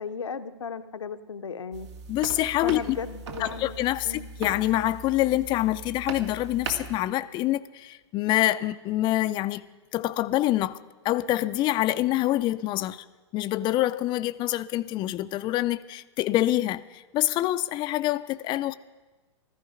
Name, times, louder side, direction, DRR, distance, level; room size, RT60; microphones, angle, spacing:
voice 1, 0.0-1.9 2.6-3.8 4.0-4.3, left 5 dB, 85° left, 0.8 m, -35 dB
sound 1, 1.7-7.0, right 4 dB, 70° right, 1.9 m, -39 dB
voice 2, 2.1-3.0 3.4-9.6 9.9-10.8 11.0-13.0 13.3-18.7, left 15 dB, 30° left, 0.4 m, -26 dB
15.0 x 13.5 x 5.0 m
hypercardioid pair, 105°, 15 cm